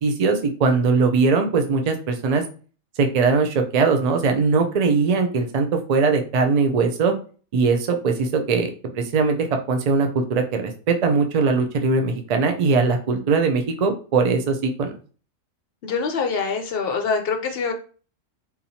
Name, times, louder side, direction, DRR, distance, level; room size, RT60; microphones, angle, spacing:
voice 1, 0.0-2.4 3.0-7.1 7.5-14.9, right 4 dB, 75° right, 5 dB, 0.3 m, -20 dB
voice 2, 15.8-17.7, left 5 dB, 60° left, 5 dB, 0.6 m, -24 dB
3.9 x 2.9 x 2.7 m, 0.38 s
omnidirectional pair, 1.3 m